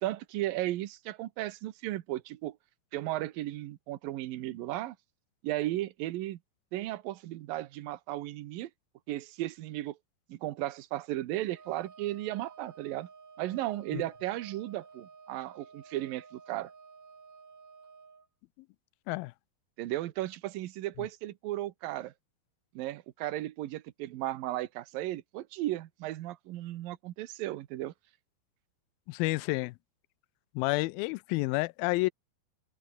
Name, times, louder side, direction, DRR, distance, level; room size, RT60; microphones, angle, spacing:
voice 1, 0.0-2.6 2.9-5.0 5.4-6.4 6.7-8.7 9.1-10.0 10.3-13.1 13.4-16.7 19.8-22.1 22.7-27.9, right 15 dB, 70° right, 2.6 m, -35 dB
Wind instrument woodwind instrument, 11.5-18.3, right 5 dB, 45° right, 5.2 m, -53 dB
voice 2, 29.1-29.7 30.6-32.1, left 23 dB, 80° left, 2.2 m, -30 dB
omnidirectional pair, 4.5 m